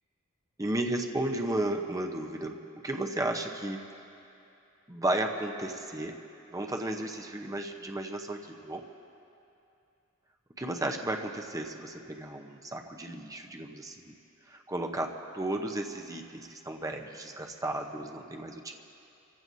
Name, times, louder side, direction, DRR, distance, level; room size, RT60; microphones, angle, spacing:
voice 1, 0.6-2.6 2.8-3.8 4.9-6.2 6.5-8.9 10.6-14.2 14.5-18.7, right 1 dB, 15° right, 3 dB, 0.8 m, -34 dB
27.5 x 15.5 x 2.7 m, 2.7 s
head